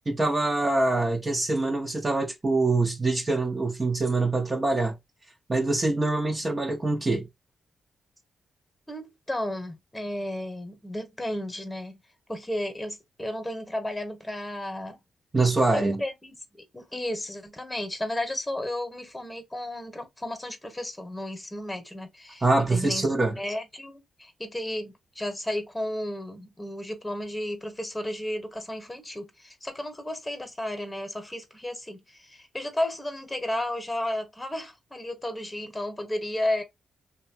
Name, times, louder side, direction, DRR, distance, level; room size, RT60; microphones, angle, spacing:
voice 1, 0.1-5.0 5.5-7.3 15.3-16.0 22.4-23.4, right 2 dB, 30° right, 0.7 m, -24 dB
voice 2, 8.9-12.0 12.3-15.0 15.7-16.4 16.7-22.4 22.7-23.0 23.4-36.6, left 1 dB, 15° left, 1.1 m, -33 dB
2.9 x 2.3 x 2.7 m
cardioid pair, 65°, 0 cm